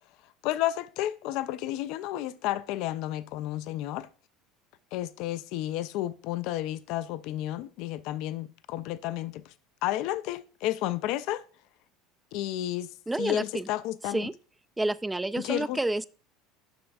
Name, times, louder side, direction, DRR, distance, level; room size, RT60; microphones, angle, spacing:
voice 1, 0.4-4.1 4.9-9.5 9.8-11.4 12.3-12.9 13.2-14.3 15.4-15.8, left 14 dB, 65° left, 0.4 m, -31 dB
voice 2, 13.1-13.7 14.1-14.3 14.8-16.1, right 2 dB, 10° right, 0.3 m, -29 dB
7.7 x 6.1 x 2.3 m
hypercardioid pair, 80°, 0 cm